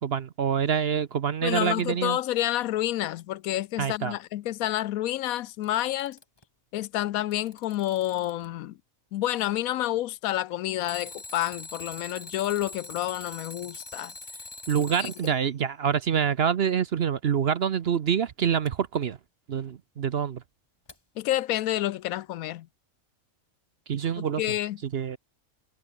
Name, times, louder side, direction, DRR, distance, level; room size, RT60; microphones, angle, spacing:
voice 1, 0.0-2.2 3.8-4.2 14.7-19.2 19.5-20.4 23.9-24.4 24.8-25.2, right 7 dB, 55° right, 0.9 m, -26 dB
voice 2, 1.4-6.2 6.7-8.8 9.1-14.1 15.0-15.1 21.2-22.7 24.4-24.8, left 14 dB, 75° left, 1.0 m, -29 dB
Alarm, 5.5-6.4 7.1-8.5 10.8-15.3 18.6-18.7 20.9-21.0, left 2 dB, 15° left, 1.7 m, -43 dB
omnidirectional pair, 1.5 m